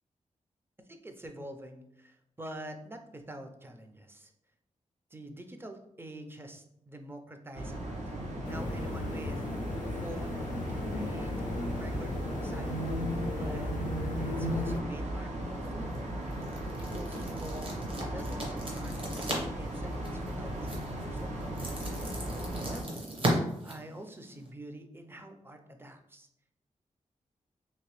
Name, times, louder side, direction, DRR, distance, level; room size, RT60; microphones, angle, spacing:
voice 1, 0.9-4.3 5.1-8.1 8.5-9.5 9.9-10.4 10.7-11.3 11.6-12.7 13.4-13.7 14.2-15.9 16.7-21.7 22.5-23.1 23.6-26.3, right 1 dB, 15° right, 6 dB, 0.4 m, -46 dB
sound 1, 7.5-22.8, right 1 dB, 65° right, 0.6 m, -37 dB
sound 2, 8.4-14.8, left 1 dB, 90° left, 0.4 m, -35 dB
sound 3, 15.5-24.5, right 1 dB, 45° right, 1.0 m, -38 dB
2.8 x 2.8 x 3.0 m, 0.78 s
cardioid pair, 75°, 13 cm